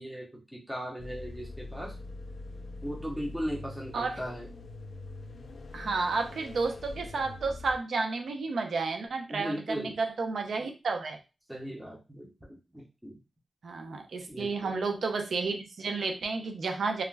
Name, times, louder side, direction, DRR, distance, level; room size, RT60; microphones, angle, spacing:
voice 1, 0.0-1.9 2.8-4.5 9.3-10.0 11.5-13.2 14.3-14.7, equal, 5° right, -1 dB, 0.5 m, -38 dB
sound 1, 1.0-7.8, left 2 dB, 60° left, 0.3 m, -43 dB
voice 2, 5.7-11.2 13.6-17.0, right 4 dB, 70° right, 5 dB, 0.5 m, -31 dB
2.3 x 2.1 x 3.2 m, 0.28 s
wide cardioid pair, 150°, 0 cm